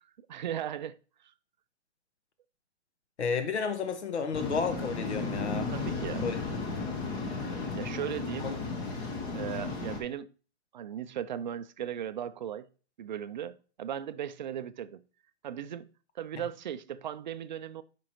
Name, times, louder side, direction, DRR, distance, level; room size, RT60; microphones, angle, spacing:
voice 1, 0.3-1.0 5.7-6.3 7.8-8.5 9.3-10.3 10.7-12.7 13.0-15.0 15.4-17.8, right 9 dB, 45° right, 0.4 m, -37 dB
voice 2, 3.2-5.7 6.2-6.6 8.4-8.5, left 5 dB, 75° left, 1.3 m, -32 dB
Waves surf, 4.3-10.0, left 3 dB, 10° left, 0.5 m, -34 dB
8.6 x 5.2 x 2.9 m
hypercardioid pair, 140°, 34 cm